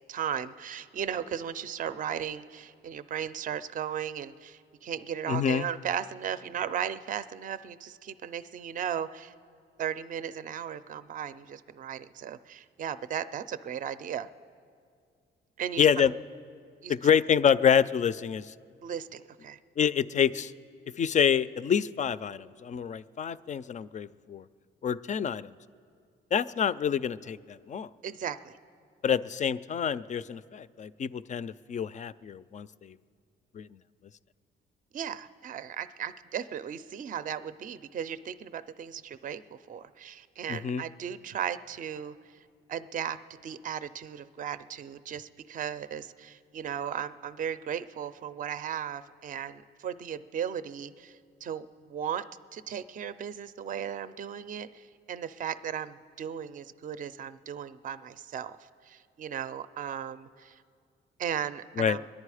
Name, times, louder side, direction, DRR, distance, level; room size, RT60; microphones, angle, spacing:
voice 1, 0.1-9.3 9.8-14.3 15.6-16.1 16.8-16.9 18.8-19.6 28.0-28.5 34.9-39.4 39.7-42.2 42.7-43.2 43.4-52.2 52.5-58.6 58.8-60.6 61.2-62.0, right 8 dB, 40° right, 14 dB, 0.5 m, -36 dB
voice 2, 5.3-5.7 15.8-16.1 16.9-18.5 19.8-20.5 21.0-24.4 24.8-25.5 26.3-27.9 29.0-32.9 33.5-33.7 40.5-40.8 61.8-62.0, left 8 dB, 40° left, 16 dB, 0.4 m, -27 dB
23.5 x 10.5 x 4.9 m, 2.2 s
cardioid pair, 90°, 20 cm